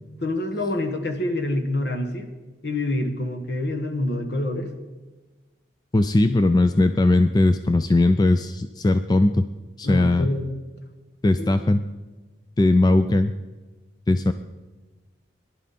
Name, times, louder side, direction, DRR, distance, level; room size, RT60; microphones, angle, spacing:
voice 1, 0.2-2.3 2.6-4.7 9.8-10.5 11.4-11.5, left 1 dB, 60° left, 6 dB, 1.4 m, -26 dB
voice 2, 5.9-9.5 9.8-10.3 11.2-11.8 12.6-13.3 14.1-14.3, left 2 dB, 20° left, 10 dB, 0.3 m, -19 dB
18.5 x 11.5 x 4.2 m, 1.2 s
head